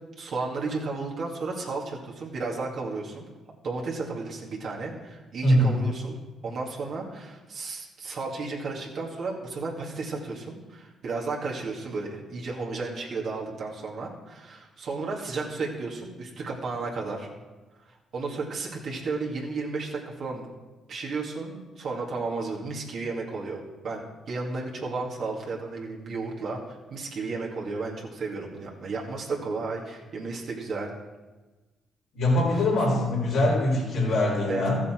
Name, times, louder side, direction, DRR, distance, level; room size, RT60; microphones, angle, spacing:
voice 1, 0.2-3.3 3.6-17.3 17.9-20.5 20.9-30.9 32.5-32.6 34.1-34.2 34.5-34.6, right 3 dB, 65° right, -2 dB, 2.2 m, -33 dB
voice 2, 5.4-5.8 32.1-34.8, left 1 dB, 80° left, -9 dB, 3.8 m, -23 dB
14.0 x 7.3 x 4.5 m, 1.2 s
supercardioid pair, 55°, 0 cm